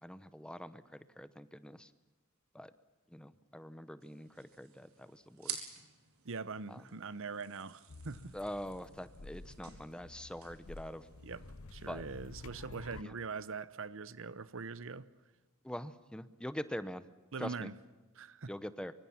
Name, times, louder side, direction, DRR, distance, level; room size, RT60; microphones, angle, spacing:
voice 1, 0.0-1.9 2.5-2.7 3.1-5.7 6.7-6.8 8.3-11.1 11.9-12.0 13.0-13.1 15.6-17.0 17.4-17.7 18.5-18.9, equal, 5° left, 0.8 m, -44 dB
sound 1, 4.0-11.6, right 8 dB, 80° right, 4.4 m, -51 dB
voice 2, 6.2-8.4 11.2-11.4 11.7-15.1 17.3-17.7 18.2-18.5, right 4 dB, 60° right, 0.9 m, -42 dB
sound 2, 7.9-13.0, left 3 dB, 75° left, 0.9 m, -51 dB
24.5 x 24.5 x 7.3 m
head